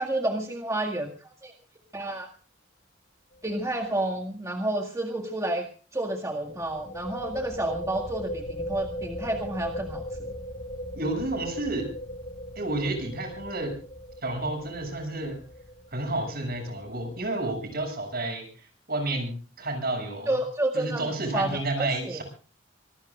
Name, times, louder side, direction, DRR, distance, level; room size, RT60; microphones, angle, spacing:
voice 1, 0.0-1.5 1.9-2.3 3.4-5.7 5.9-10.3 20.3-21.1 21.3-22.2, right 1 dB, 15° right, 2 dB, 1.9 m, -30 dB
sound 1, 3.3-3.6 3.9-4.0 6.4-17.8, equal, 45° left, 5.8 m, -39 dB
voice 2, 10.9-11.9 12.6-13.7 14.2-15.4 15.9-20.3 20.7-22.2, right 2 dB, 50° right, 5 dB, 7.1 m, -30 dB
25.5 x 19.0 x 2.5 m, 0.38 s
head